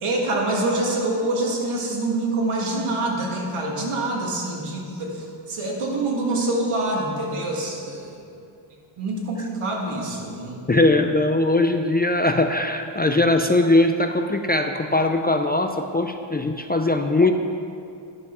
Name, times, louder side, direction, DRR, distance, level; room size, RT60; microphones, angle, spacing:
voice 1, 0.0-8.2 9.0-10.6, right 2 dB, 80° right, -1 dB, 1.9 m, -26 dB
voice 2, 10.7-17.3, left 2 dB, 20° left, 5 dB, 0.4 m, -20 dB
11.0 x 6.2 x 6.0 m, 2.5 s
wide cardioid pair, 125°, 49 cm